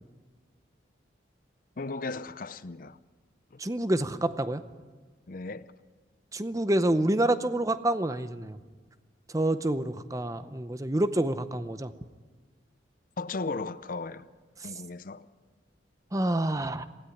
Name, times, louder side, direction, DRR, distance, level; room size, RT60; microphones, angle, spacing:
voice 1, 1.8-3.0 3.5-3.6 5.3-5.7 13.2-14.3 14.6-15.3, left 3 dB, 45° left, 0.6 m, -36 dB
voice 2, 3.6-4.6 6.3-8.6 9.3-11.9 14.6-14.7 16.1-16.9, right 1 dB, 15° right, 0.6 m, -27 dB
19.0 x 16.0 x 9.8 m
head